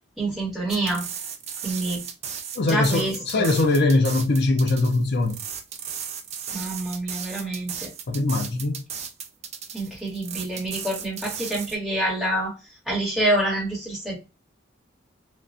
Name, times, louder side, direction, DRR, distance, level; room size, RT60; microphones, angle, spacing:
voice 1, 0.2-1.1 1.6-2.0 2.6-3.5 6.5-7.9 9.7-12.5 12.9-14.2, right 1 dB, ahead, 1.2 m, -27 dB
sound 1, 0.7-11.8, right 7 dB, 35° right, 0.3 m, -35 dB
voice 2, 2.6-5.4 8.1-8.8, left 2 dB, 60° left, 0.5 m, -22 dB
2.3 x 2.1 x 2.5 m
head